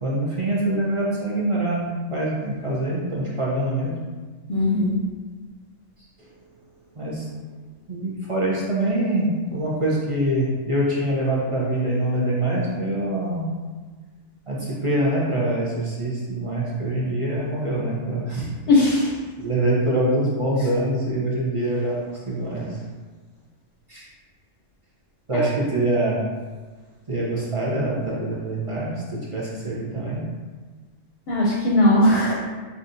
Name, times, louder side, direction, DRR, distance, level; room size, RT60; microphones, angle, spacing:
voice 1, 0.0-4.0 6.2-6.4 6.9-7.4 7.9-13.5 14.5-18.5 19.4-22.8 23.9-24.1 25.3-26.2 27.1-30.2, right 1 dB, 35° right, -6 dB, 0.6 m, -24 dB
voice 2, 4.5-5.0 18.7-19.2 25.3-25.4 31.3-32.5, left 1 dB, 55° left, -4 dB, 0.8 m, -19 dB
5.6 x 2.4 x 2.6 m, 1.4 s
omnidirectional pair, 1.3 m